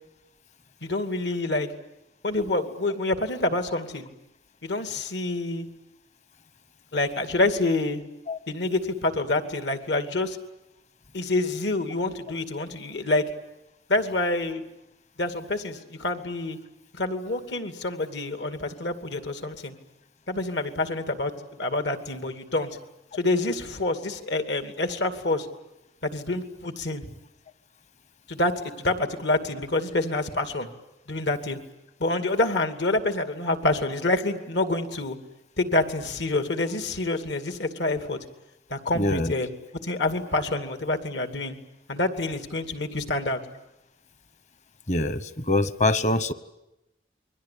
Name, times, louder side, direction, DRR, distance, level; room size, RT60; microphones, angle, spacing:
voice 1, 0.8-1.7 2.2-4.1 4.6-5.7 6.9-8.0 8.5-10.4 11.1-13.2 13.9-14.6 15.2-16.6 17.0-19.7 20.3-21.3 21.6-22.8 23.1-25.5 26.0-27.1 28.3-30.7 31.1-31.6 32.0-35.2 35.6-38.2 38.7-39.5 39.8-41.6 41.9-43.4, left 2 dB, 75° left, 8 dB, 2.6 m, -27 dB
voice 2, 38.9-39.3 44.9-46.3, left 2 dB, 40° left, 14 dB, 1.1 m, -24 dB
29.0 x 22.5 x 8.6 m, 0.92 s
head